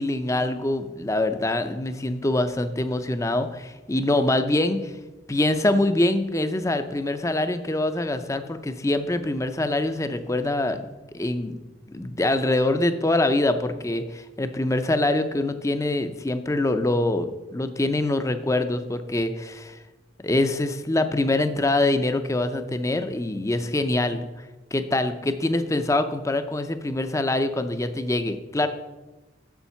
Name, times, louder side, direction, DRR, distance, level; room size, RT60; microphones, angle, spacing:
voice 1, 0.0-4.9 5.3-10.8 11.1-11.5 11.9-19.8 20.2-24.2 24.7-28.7, left 2 dB, 15° left, 9 dB, 0.5 m, -24 dB
7.1 x 6.8 x 5.7 m, 1.1 s
head